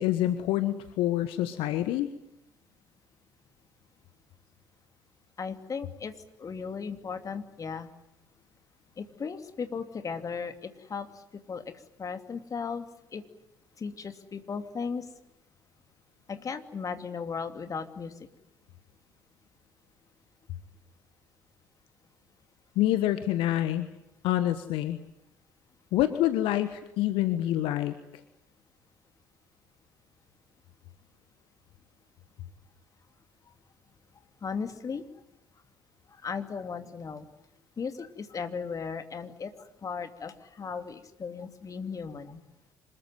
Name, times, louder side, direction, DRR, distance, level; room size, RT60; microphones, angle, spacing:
voice 1, 0.0-2.1 22.7-23.9 24.2-25.0 25.9-27.9, left 13 dB, 60° left, 10 dB, 1.4 m, -27 dB
voice 2, 5.4-6.1 6.4-7.9 9.0-11.1 11.5-11.6 12.0-12.8 13.1-13.2 13.8-15.0 16.3-18.1 34.4-35.0 36.1-37.3 37.8-39.5 39.8-42.4, left 5 dB, 35° left, 8 dB, 2.7 m, -36 dB
26.5 x 21.5 x 9.4 m, 0.86 s
figure-of-eight pair, 50°, 10 cm